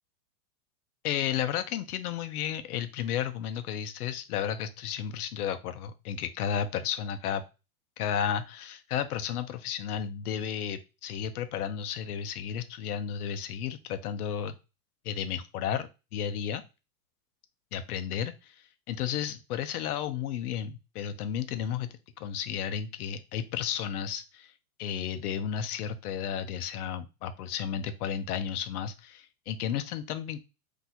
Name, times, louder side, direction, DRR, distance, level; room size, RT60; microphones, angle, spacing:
voice 1, 1.0-7.4 8.0-14.6 15.0-16.6 17.7-18.5 18.9-21.9 22.2-24.5 24.8-30.4, left 9 dB, 85° left, 10 dB, 0.7 m, -33 dB
2.7 x 2.3 x 4.1 m, 0.29 s
supercardioid pair, 155°, 44 cm